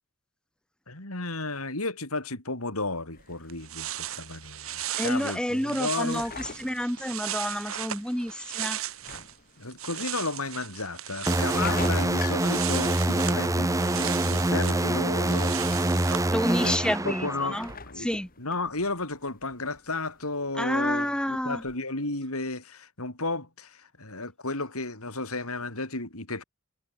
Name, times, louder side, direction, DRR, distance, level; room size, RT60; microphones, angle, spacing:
voice 1, 0.9-6.3 9.6-17.6 17.9-18.1 18.4-26.4, left 2 dB, 75° left, 5.9 m, -33 dB
sound 1, 3.1-21.8, left 4 dB, 40° left, 2.9 m, -46 dB
sound 2, 3.2-3.3 3.5-9.3 9.6-16.3, right 11 dB, 65° right, 2.2 m, -37 dB
voice 2, 5.0-8.8 16.3-17.7 18.0-18.3 20.6-21.6, equal, 5° left, 1.5 m, -29 dB
sound 3, 11.3-17.7, right 1 dB, 15° right, 1.1 m, -25 dB
head